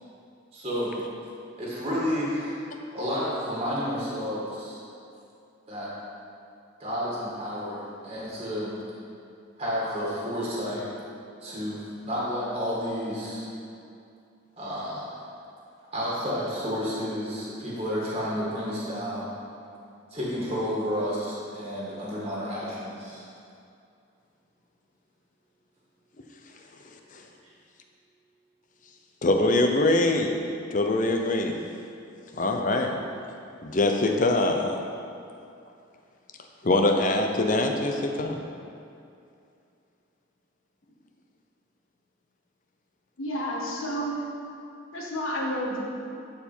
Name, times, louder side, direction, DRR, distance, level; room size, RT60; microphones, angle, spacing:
voice 1, 0.5-0.9 1.6-2.6 2.9-4.8 5.7-5.9 6.8-8.7 9.6-10.8 11.4-11.8 12.0-13.4 14.6-15.1 15.9-19.3 20.1-23.2, equal, 30° right, -7 dB, 1.9 m, -31 dB
voice 2, 29.2-30.3 30.7-31.6 32.3-33.0 33.6-34.8 36.6-38.4, left 2 dB, 40° left, 4 dB, 0.6 m, -23 dB
voice 3, 43.2-44.1 44.9-45.9, equal, 80° left, -3 dB, 1.5 m, -30 dB
12.5 x 4.6 x 4.4 m, 2.5 s
head